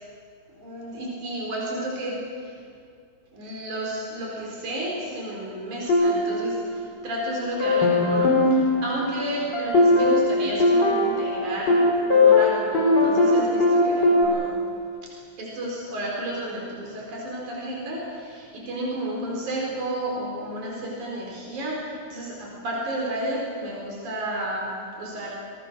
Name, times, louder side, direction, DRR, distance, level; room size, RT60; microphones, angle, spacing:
voice 1, 0.6-2.5 3.3-11.8 12.1-14.6 15.0-15.1 15.4-25.3, right 1 dB, 80° right, -3 dB, 5.7 m, -32 dB
sound 1, 5.9-7.2 7.6-14.2, left 2 dB, 35° left, 4.6 m, -20 dB
28.0 x 22.5 x 6.3 m, 2.3 s
omnidirectional pair, 3.4 m